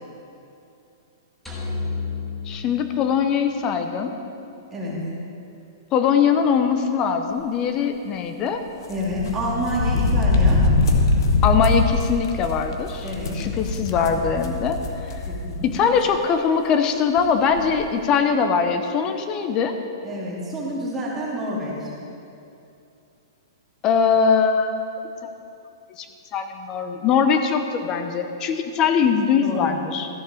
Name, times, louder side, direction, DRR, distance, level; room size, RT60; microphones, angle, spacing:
sound 1, 1.5-3.7, left 4 dB, 5° left, 1.7 m, -31 dB
voice 1, 2.5-4.1 5.9-8.6 11.4-14.8 15.6-19.7 23.8-24.7 26.0-26.1 26.3-30.1, left 6 dB, 25° left, 7 dB, 0.8 m, -21 dB
sound 2, 8.9-15.6 16.0-16.1 17.2-17.3 17.5-17.8, left 3 dB, 70° left, 1.2 m, -22 dB
voice 2, 8.9-10.6 13.0-13.4 15.3-15.7 20.0-21.9 29.4-29.7, equal, 10° right, -6 dB, 2.4 m, -28 dB
13.5 x 6.6 x 5.1 m, 2.7 s
hypercardioid pair, 150°, 2 cm